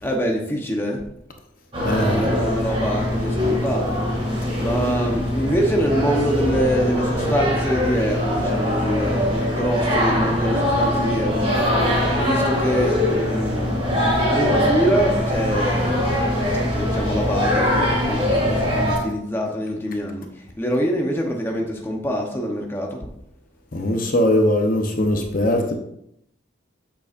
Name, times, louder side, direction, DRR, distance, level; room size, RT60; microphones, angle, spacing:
voice 1, 0.0-1.0 2.1-4.1 4.6-11.8 12.1-16.3 16.7-23.1, equal, 10° left, 0.8 m, -25 dB
sound 1, 1.7-19.0, left 1 dB, 30° right, 2.2 m, -22 dB
voice 2, 1.8-2.3 11.8-11.9 23.7-25.7, left 1 dB, 45° left, 0.8 m, -20 dB
7.9 x 6.8 x 2.5 m
head